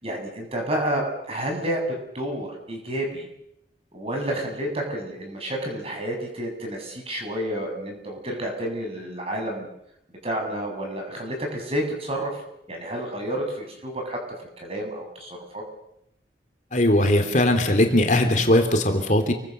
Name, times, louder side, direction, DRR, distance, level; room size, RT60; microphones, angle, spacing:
voice 1, 0.0-1.8 2.1-3.3 3.9-9.7 10.2-12.3 12.7-14.2 14.6-15.6, right 1 dB, 35° right, 2 dB, 7.9 m, -30 dB
voice 2, 16.7-19.3, left 1 dB, 45° left, 5 dB, 3.2 m, -19 dB
29.0 x 25.0 x 6.9 m, 0.78 s
head